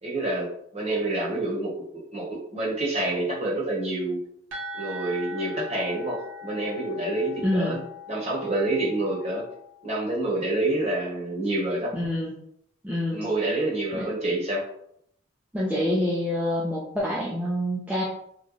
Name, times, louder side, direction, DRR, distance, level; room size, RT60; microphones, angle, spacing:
voice 1, 0.0-1.7 2.1-4.2 4.8-7.8 8.1-9.4 9.8-11.9 13.1-14.6, right 2 dB, 30° right, -4 dB, 1.0 m, -27 dB
sound 1, 4.5-10.1, left 2 dB, 70° right, 1.1 m, -41 dB
voice 2, 7.4-7.8 11.9-12.3 12.8-13.2 13.9-14.1 15.5-18.0, left 1 dB, 5° right, -7 dB, 0.4 m, -26 dB
3.1 x 2.2 x 3.8 m, 0.72 s
head